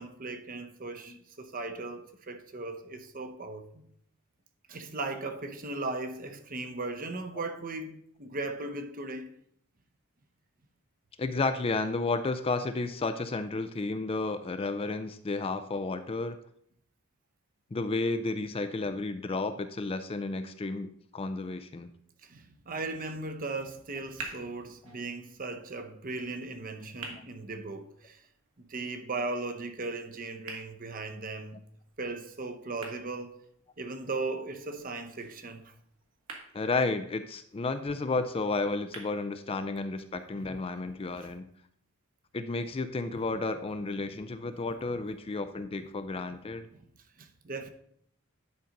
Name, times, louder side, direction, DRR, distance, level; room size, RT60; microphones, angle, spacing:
voice 1, 0.0-3.9 4.7-9.3 22.2-28.2 28.7-31.6 32.0-33.4 33.8-35.7 41.1-41.3 47.2-47.7, right 3 dB, 40° right, 0.8 m, -37 dB
voice 2, 11.2-16.4 17.7-21.9 36.5-41.5 42.3-46.7, left 3 dB, 25° left, 0.4 m, -32 dB
sound 1, 23.8-39.8, right 3 dB, 75° right, 1.8 m, -51 dB
10.5 x 3.9 x 5.2 m
head